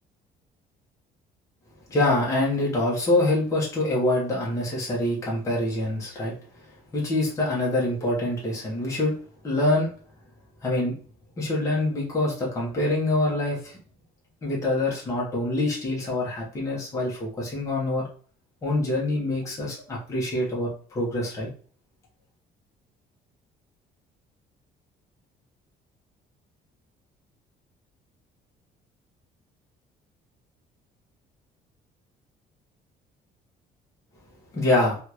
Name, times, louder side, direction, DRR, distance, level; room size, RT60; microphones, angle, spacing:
voice 1, 1.9-6.3 6.9-9.1 9.4-9.9 10.6-11.0 11.4-13.8 14.4-18.0 18.6-21.5 34.5-35.0, left 2 dB, 20° left, -5 dB, 1.0 m, -25 dB
3.6 x 2.4 x 3.0 m, 0.42 s
cardioid pair, 175°, 16 cm